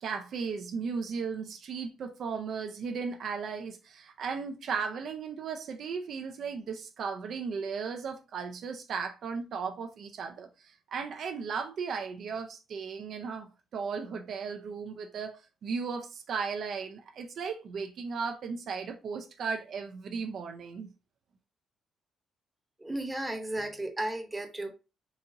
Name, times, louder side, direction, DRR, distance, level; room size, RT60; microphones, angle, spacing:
voice 1, 0.0-20.9, right 5 dB, 65° right, 0.5 m, -36 dB
voice 2, 22.8-24.8, right 1 dB, 10° right, 0.9 m, -34 dB
4.0 x 2.8 x 2.5 m
cardioid pair, 90°, 0 cm